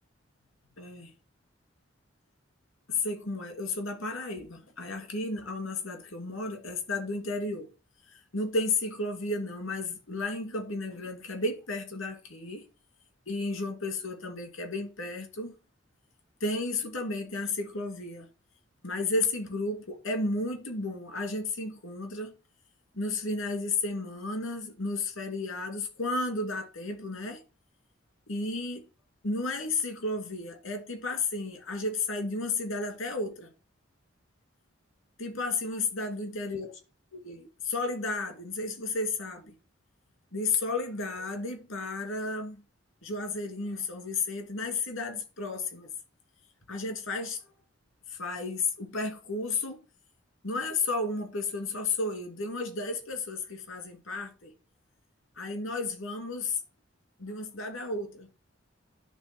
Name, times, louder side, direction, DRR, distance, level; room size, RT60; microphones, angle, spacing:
voice 1, 0.8-1.1 2.9-7.7 8.3-12.6 13.3-15.5 16.4-18.3 18.8-22.3 22.9-27.4 28.3-28.9 29.2-33.5 35.2-36.8 37.1-39.5 40.3-42.6 43.0-45.9 46.7-47.4 48.1-49.8 50.4-54.5 55.4-56.6 57.2-58.3, left 3 dB, 75° left, 2.6 m, -33 dB
10.5 x 3.7 x 6.1 m
head